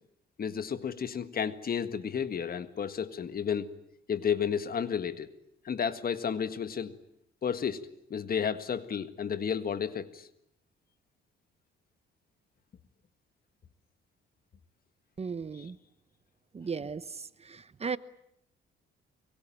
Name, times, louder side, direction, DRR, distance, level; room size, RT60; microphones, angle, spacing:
voice 1, 0.4-3.7 4.1-5.3 5.7-6.9 7.4-10.3 15.5-15.7, left 7 dB, 50° left, 11 dB, 1.8 m, -32 dB
voice 2, 15.2-15.8 16.5-18.0, right 5 dB, 30° right, 15 dB, 1.0 m, -36 dB
24.5 x 23.0 x 9.0 m, 0.77 s
cardioid pair, 90°, 20 cm